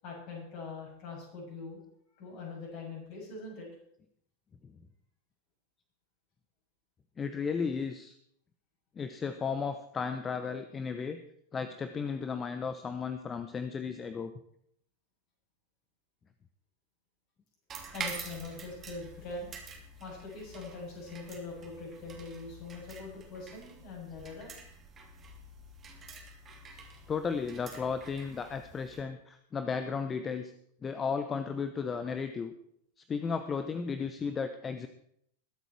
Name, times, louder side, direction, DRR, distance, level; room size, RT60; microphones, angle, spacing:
voice 1, 0.0-1.8 2.2-3.7 17.9-19.5 20.0-24.5, left 3 dB, 45° left, -2 dB, 7.1 m, -42 dB
voice 2, 7.2-8.2 9.0-11.2 11.5-14.3 26.7-30.5 30.8-32.5 33.1-34.9, left 5 dB, 20° left, 10 dB, 0.8 m, -34 dB
sound 1, 17.7-29.0, right 4 dB, 25° right, 2.8 m, -47 dB
21.0 x 8.1 x 4.6 m, 0.69 s
figure-of-eight pair, 90°, 0 cm